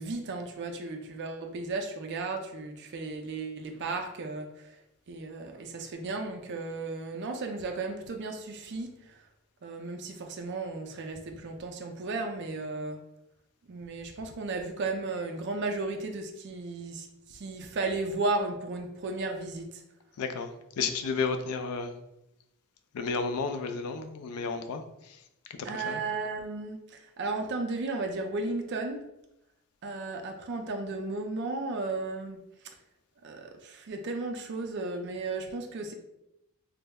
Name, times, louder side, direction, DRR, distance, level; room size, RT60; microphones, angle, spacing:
voice 1, 0.0-4.5 5.1-8.9 9.6-13.0 13.7-19.8 25.6-29.0 29.8-32.4 33.2-35.9, right 3 dB, 50° right, 4 dB, 0.4 m, -34 dB
voice 2, 20.2-20.5 20.8-21.9 22.9-24.8 25.7-26.0, left 4 dB, 80° left, 7 dB, 0.4 m, -32 dB
3.1 x 2.0 x 3.4 m, 0.86 s
head